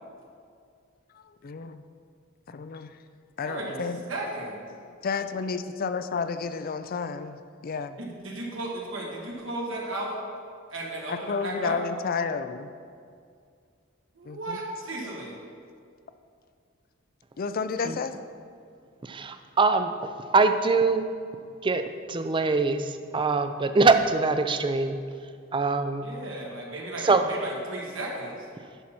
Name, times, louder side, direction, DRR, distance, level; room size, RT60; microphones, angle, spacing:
voice 1, 1.1-1.8 2.5-2.9 3.4-4.0 5.0-8.0 11.1-12.7 14.3-14.6 17.4-18.1, left 5 dB, 45° left, 11 dB, 0.4 m, -31 dB
voice 2, 3.5-3.8 4.1-4.6 8.0-10.2 10.7-11.8 14.2-15.3 26.0-28.5, right 1 dB, 75° right, -2 dB, 1.7 m, -35 dB
voice 3, 19.0-21.1 21.6-25.0 25.5-26.1 27.0-27.3, right 4 dB, 25° right, 9 dB, 0.4 m, -23 dB
11.0 x 5.8 x 4.3 m, 2.3 s
head